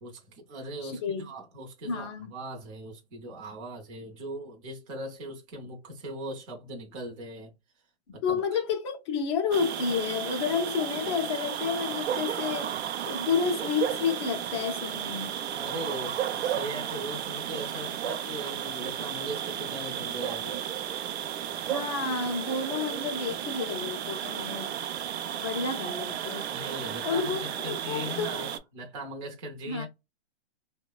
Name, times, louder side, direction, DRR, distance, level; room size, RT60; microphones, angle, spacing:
voice 1, 0.0-7.5 8.1-8.6 15.2-20.6 26.5-29.9, right 1 dB, 30° right, 0.6 m, -39 dB
voice 2, 0.8-1.3 1.8-2.3 8.2-12.7 13.1-15.4 21.6-24.7 25.3-26.5 27.0-28.5 29.7-29.9, left 6 dB, 25° left, 0.4 m, -30 dB
sound 1, 9.5-28.6, right 10 dB, 70° right, 0.5 m, -33 dB
3.1 x 2.1 x 2.2 m
hypercardioid pair, 150°, 33 cm